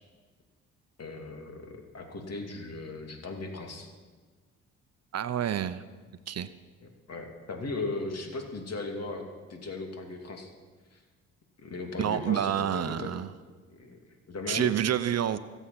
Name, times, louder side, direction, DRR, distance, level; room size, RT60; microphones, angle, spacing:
voice 1, 1.0-3.9 6.8-9.2 9.5-10.5 10.9-11.0 11.6-13.1 13.7-14.7, left 3 dB, 50° left, 3 dB, 2.8 m, -37 dB
voice 2, 5.1-5.8 6.3-6.5 12.0-13.3 14.5-15.4, right 10 dB, 50° right, 14 dB, 0.7 m, -28 dB
23.5 x 8.2 x 5.9 m, 1.4 s
supercardioid pair, 55°, 33 cm